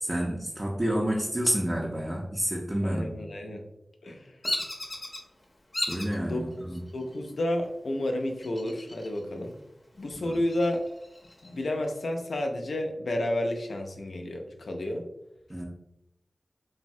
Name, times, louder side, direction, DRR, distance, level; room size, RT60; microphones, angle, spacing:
voice 1, 0.0-3.2 5.9-6.8 10.2-10.4 15.5-15.6, equal, 25° right, -3 dB, 0.5 m, -29 dB
voice 2, 2.8-3.6 4.0-4.4 6.2-9.5 10.0-10.8 11.4-15.0, left 1 dB, 90° left, 2 dB, 0.4 m, -31 dB
Bird vocalization bird call bird song, 4.4-5.2 5.7-6.2 6.7-7.3 8.4-9.2 9.5-9.6 10.1-11.5, left 1 dB, 35° left, 0.6 m, -34 dB
3.2 x 2.0 x 2.6 m, 0.85 s
wide cardioid pair, 75°, 0 cm